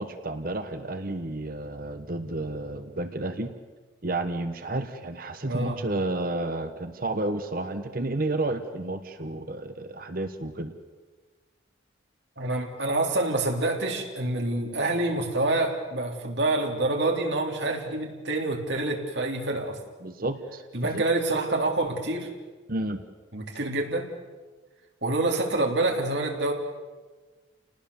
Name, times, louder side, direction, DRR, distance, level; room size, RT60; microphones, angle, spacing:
voice 1, 0.0-3.5 4.0-10.7 20.0-21.0 22.7-23.0, right 2 dB, 45° right, 9 dB, 1.2 m, -31 dB
voice 2, 5.4-5.8 12.4-19.8 20.7-22.3 23.3-24.1 25.0-26.5, right 2 dB, 65° right, 2 dB, 3.7 m, -27 dB
29.5 x 19.5 x 7.2 m, 1.3 s
head